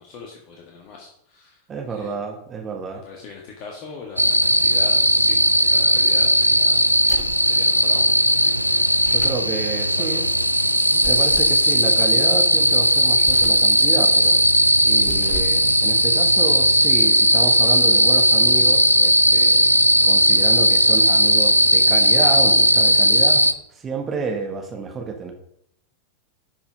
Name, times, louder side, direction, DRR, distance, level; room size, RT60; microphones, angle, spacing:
voice 1, 0.0-2.2 3.0-6.8 7.4-8.1 8.4-9.3 10.0-10.2, left 5 dB, 40° left, 0 dB, 1.7 m, -40 dB
voice 2, 1.7-3.0 9.0-10.2 10.9-14.4 14.8-23.4 23.7-25.3, right 5 dB, 25° right, 4 dB, 1.5 m, -30 dB
sound 1, 4.2-23.5, equal, 90° right, 0.5 m, -17 dB
sound 2, 7.1-7.5 8.9-9.5 11.0-11.6 13.2-13.7 14.9-15.7, equal, 5° left, 1.8 m, -37 dB
12.0 x 5.8 x 5.1 m, 0.73 s
figure-of-eight pair, 90°, 0 cm